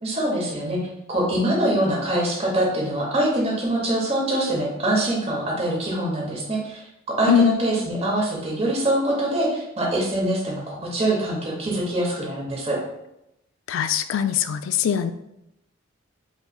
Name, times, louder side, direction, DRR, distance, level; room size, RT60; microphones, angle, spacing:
voice 1, 0.0-0.8 1.1-12.8, right 1 dB, 30° right, -2 dB, 1.0 m, -24 dB
voice 2, 13.7-15.1, left 8 dB, 70° left, 11 dB, 0.3 m, -21 dB
5.4 x 3.1 x 2.3 m, 0.84 s
head